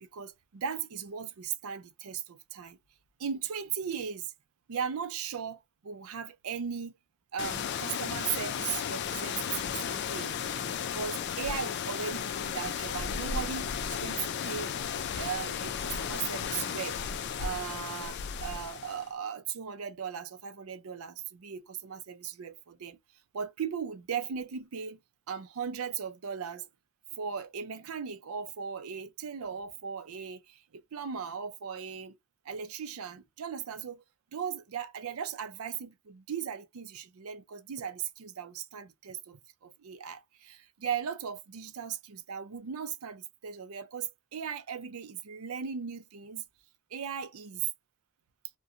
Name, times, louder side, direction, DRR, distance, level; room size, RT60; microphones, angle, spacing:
voice 1, 0.0-2.8 3.2-4.3 4.7-6.9 7.3-10.3 10.8-14.7 15.2-17.0 17.4-23.0 23.3-25.0 25.3-26.7 27.1-32.2 32.5-34.0 34.3-46.4 46.9-47.6, right 7 dB, 85° right, 0.5 m, -37 dB
sound 1, 7.4-19.1, left 7 dB, 50° left, 0.3 m, -34 dB
2.5 x 2.2 x 2.7 m
head